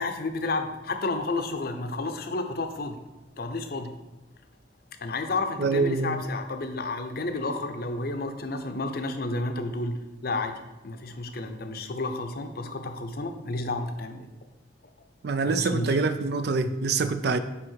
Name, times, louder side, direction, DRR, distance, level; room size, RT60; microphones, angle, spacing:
voice 1, 0.0-3.0 3.4-4.0 5.0-14.3 15.5-16.0, left 2 dB, 55° left, 0.7 m, -31 dB
voice 2, 5.6-6.2 15.2-17.4, right 4 dB, 60° right, 0.4 m, -25 dB
9.5 x 3.6 x 4.6 m
head